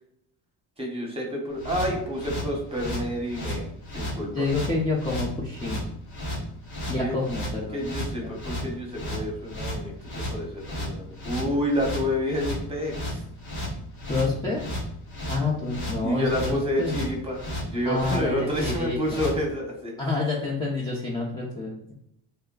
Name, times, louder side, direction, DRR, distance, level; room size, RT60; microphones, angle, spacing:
voice 1, 0.8-3.7 3.9-4.4 6.9-7.2 7.7-13.2 16.0-19.9, equal, 15° right, 0 dB, 1.1 m, -29 dB
sound 1, 1.6-19.4, equal, 70° left, 1.3 m, -33 dB
voice 2, 4.3-5.9 6.9-7.8 8.2-8.3 14.1-14.6 15.3-16.9 17.8-19.0 20.0-21.9, left 3 dB, 10° left, -6 dB, 0.6 m, -28 dB
3.3 x 2.2 x 3.7 m, 0.75 s
cardioid pair, 100°, 41 cm